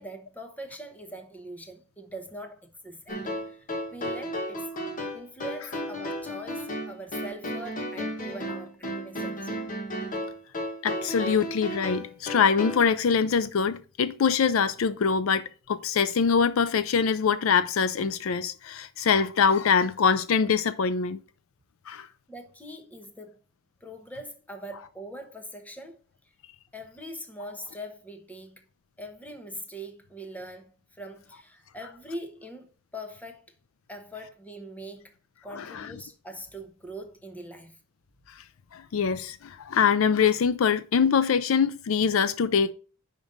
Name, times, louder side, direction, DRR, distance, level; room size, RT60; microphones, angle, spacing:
voice 1, 0.0-4.7 5.1-9.6 22.3-23.4 23.8-26.0 26.7-28.6 29.0-32.7 32.9-33.4 33.9-35.1 35.4-37.8, right 1 dB, 10° left, 1.0 m, -42 dB
sound 1, 3.1-12.8, equal, 40° left, 1.3 m, -34 dB
voice 2, 10.8-21.2 21.9-22.1 35.5-35.9 38.7-42.7, left 6 dB, 75° left, 0.4 m, -24 dB
5.2 x 5.1 x 5.3 m
head